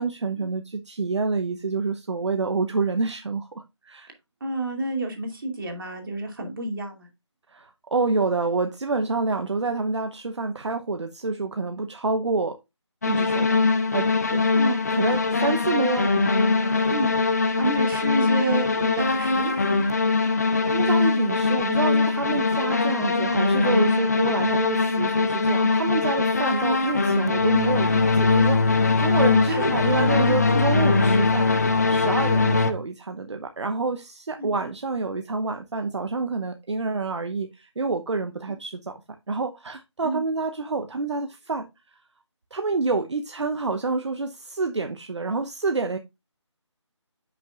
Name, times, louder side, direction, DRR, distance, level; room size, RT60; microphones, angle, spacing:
voice 1, 0.0-4.1 7.5-12.6 13.0-13.6 13.9-14.4 14.9-16.1 16.6-16.9 20.2-31.5 31.9-39.0 39.3-41.7 42.5-46.0, right 3 dB, 65° right, 0.8 m, -28 dB
voice 2, 4.4-7.1 14.5-14.8 16.9-17.1 17.5-19.6 29.5-29.7 30.1-30.6 34.4-34.5 40.0-40.2, right 2 dB, 45° right, 2.5 m, -29 dB
sound 1, 13.0-32.7, left 3 dB, 35° left, 0.7 m, -21 dB
10.5 x 6.0 x 2.4 m
figure-of-eight pair, 170°, 16 cm